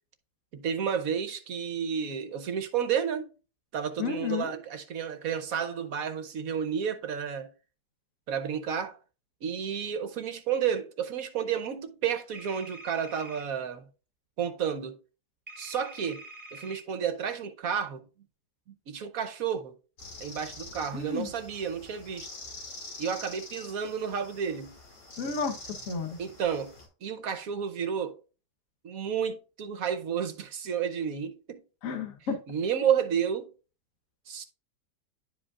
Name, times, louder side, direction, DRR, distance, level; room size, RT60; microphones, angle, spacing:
voice 1, 0.5-3.3 3.7-7.5 8.3-9.0 9.4-13.9 14.4-15.0 15.6-16.2 16.5-18.0 18.9-19.7 20.2-22.3 23.0-24.7 26.2-26.7 27.0-28.2 28.8-31.6 32.5-33.5 34.3-34.4, right 8 dB, 65° right, 1.1 m, -31 dB
voice 2, 4.0-4.5 20.9-21.3 25.2-25.6 25.9-26.2 31.8-32.4, left 5 dB, 55° left, 1.4 m, -32 dB
sound 1, 12.3-13.4 15.5-16.8, right 1 dB, 15° right, 1.1 m, -46 dB
sound 2, 20.0-26.9, left 2 dB, 85° left, 3.1 m, -46 dB
11.0 x 5.1 x 2.4 m
omnidirectional pair, 1.8 m